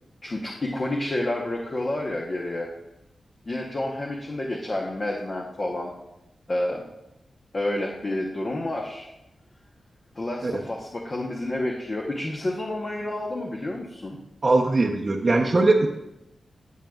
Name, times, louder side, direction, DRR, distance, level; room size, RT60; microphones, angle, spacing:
voice 1, 0.2-2.7 3.5-5.9 6.5-6.8 7.5-9.1 10.2-14.2, left 1 dB, 30° left, -1 dB, 0.9 m, -29 dB
voice 2, 14.4-15.9, right 2 dB, 30° right, -2 dB, 0.7 m, -20 dB
17.5 x 6.4 x 2.4 m, 0.90 s
wide cardioid pair, 170°, 0 cm